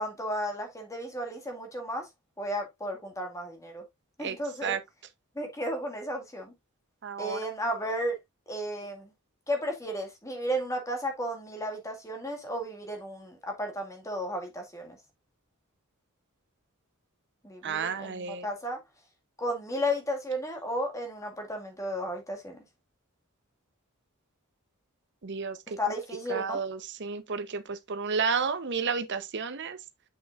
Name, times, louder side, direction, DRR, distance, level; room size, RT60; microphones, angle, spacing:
voice 1, 0.0-2.1 2.4-3.8 4.2-4.8 5.4-6.5 7.2-8.2 8.5-9.1 9.5-15.0 17.4-18.8 19.4-22.6 25.8-26.6, equal, 15° left, 1.9 m, -33 dB
voice 2, 7.0-7.4 17.6-18.5 25.2-25.8 26.3-29.8, right 5 dB, 55° right, 0.8 m, -31 dB
7.7 x 6.1 x 2.5 m
head